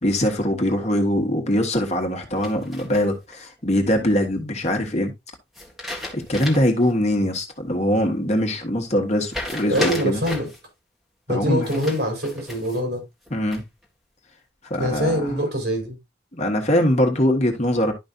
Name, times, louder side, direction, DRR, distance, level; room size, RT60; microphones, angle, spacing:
voice 1, 0.0-5.1 6.1-10.2 11.3-11.8 13.3-13.6 14.6-15.4 16.3-17.9, left 1 dB, 40° left, 1.5 m, -22 dB
sound 1, 2.4-3.3 5.5-6.8 7.2-7.3 9.3-10.6 11.6-12.8 13.2-13.8, left 1 dB, ahead, 1.8 m, -33 dB
voice 2, 9.7-10.5 11.3-13.0 14.8-16.0, equal, 65° right, 4.4 m, -24 dB
11.5 x 5.3 x 2.5 m
head